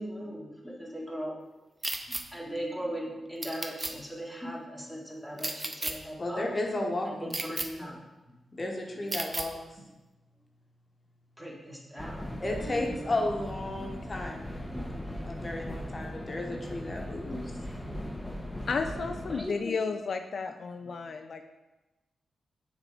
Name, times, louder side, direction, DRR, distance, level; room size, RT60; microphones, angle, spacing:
voice 1, 0.0-1.4 2.1-6.5 7.1-8.0 11.4-12.2 12.6-12.9 13.8-14.0 14.7-15.2 15.6-16.0 16.5-16.8 17.3-17.8 18.2-18.3 19.3-19.7 20.8-21.0, equal, 5° right, -3 dB, 1.9 m, -39 dB
sound 1, 1.8-2.2 3.4-3.9 5.4-5.9 7.3-7.7 9.1-9.5, right 2 dB, 25° right, 0.7 m, -33 dB
voice 2, 6.2-7.9 8.5-9.6 12.4-14.5 15.2-17.5, left 2 dB, 40° left, 1 dB, 1.1 m, -33 dB
sound 2, 12.0-19.5, left 1 dB, 10° left, 0.9 m, -39 dB
voice 3, 18.7-21.4, left 4 dB, 65° left, 6 dB, 0.3 m, -33 dB
6.5 x 3.7 x 5.0 m, 1.1 s
cardioid pair, 50°, 0 cm